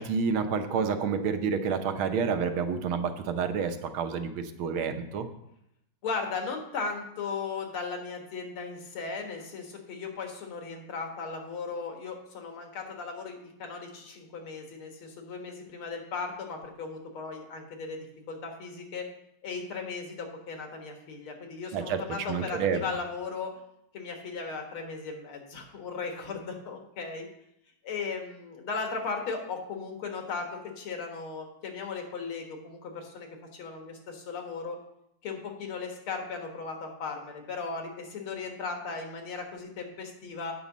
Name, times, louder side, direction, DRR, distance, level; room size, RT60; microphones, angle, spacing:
voice 1, 0.0-5.3 21.7-22.0 22.3-22.8, right 6 dB, 80° right, 7 dB, 1.7 m, -29 dB
voice 2, 6.0-19.1 19.4-23.5 23.9-27.3 27.8-34.8 35.2-40.5, left 4 dB, 90° left, 3 dB, 2.3 m, -37 dB
8.7 x 5.4 x 7.2 m, 0.78 s
omnidirectional pair, 2.3 m